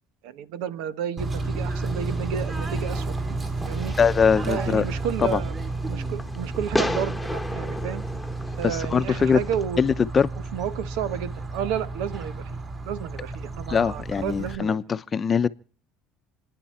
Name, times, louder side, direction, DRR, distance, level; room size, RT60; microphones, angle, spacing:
voice 1, 0.2-3.1 3.7-3.9 4.5-5.5 5.9-8.0 8.6-9.8 10.5-14.8, right 9 dB, 80° right, 1.2 m, -31 dB
Bird / Train, 1.2-14.5, right 2 dB, 30° right, 4.0 m, -31 dB
Fireworks, 1.8-9.7, left 1 dB, 5° left, 1.3 m, -35 dB
voice 2, 4.0-4.8 5.2-5.4 8.6-9.4 9.8-10.3 13.7-15.5, left 6 dB, 30° left, 0.8 m, -22 dB
29.0 x 10.0 x 4.3 m
supercardioid pair, 100°, 0 cm